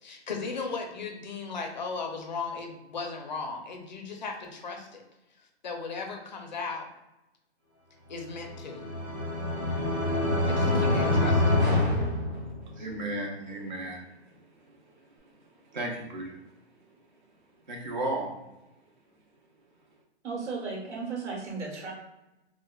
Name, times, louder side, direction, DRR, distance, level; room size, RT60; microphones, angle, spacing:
voice 1, 0.0-5.0 5.4-6.9 8.1-8.9 10.5-11.6, left 4 dB, 40° left, 2 dB, 0.4 m, -37 dB
sound 1, 8.3-12.9, left 2 dB, 5° right, 0.9 m, -26 dB
voice 2, 12.7-14.0 14.9-15.0 15.7-16.4 17.7-18.3, right 1 dB, 40° right, -1 dB, 0.7 m, -34 dB
voice 3, 20.2-21.9, right 4 dB, 80° right, -1 dB, 1.2 m, -35 dB
4.3 x 2.1 x 2.2 m, 0.96 s
hypercardioid pair, 175°, 35 cm